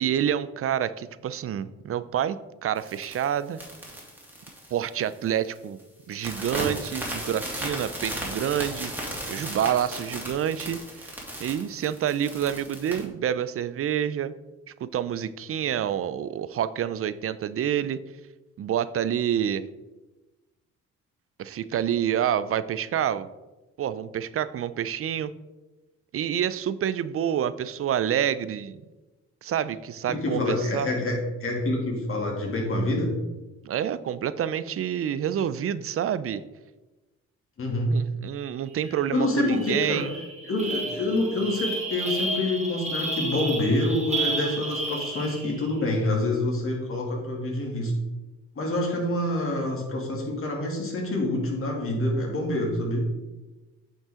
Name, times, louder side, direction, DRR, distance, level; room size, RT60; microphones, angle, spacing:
voice 1, 0.0-3.6 4.7-5.8 6.1-11.1 11.4-14.3 14.8-18.0 18.6-19.6 21.4-23.3 23.8-25.3 26.1-28.8 29.4-30.9 33.6-36.4 37.9-40.1, right 9 dB, 50° right, 15 dB, 0.5 m, -28 dB
sound 1, 2.8-5.3 5.5-5.8 6.1-13.0, right 1 dB, 5° right, 2.6 m, -35 dB
voice 2, 30.1-33.1 37.6-37.9 39.1-40.0 40.5-47.9 48.5-53.1, left 1 dB, 45° left, -1 dB, 2.6 m, -27 dB
sound 2, 38.8-39.0 39.3-45.7, right 2 dB, 20° right, 1.6 m, -32 dB
8.8 x 5.4 x 3.7 m, 1.1 s
cardioid pair, 90°, 30 cm